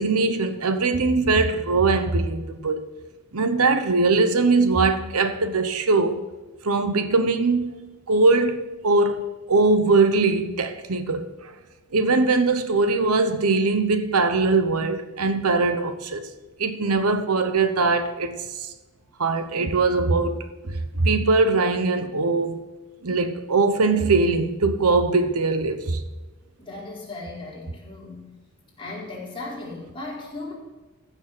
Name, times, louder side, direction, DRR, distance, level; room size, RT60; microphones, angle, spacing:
voice 1, 0.0-2.8 3.3-6.2 6.6-7.8 8.1-9.2 9.5-11.3 11.9-16.3 16.6-18.7 19.2-22.6 23.0-26.0, right 3 dB, 85° right, 1.0 m, -21 dB
voice 2, 26.6-28.4 28.8-30.5, left 2 dB, 25° left, 4.4 m, -36 dB
14.5 x 7.2 x 6.1 m
head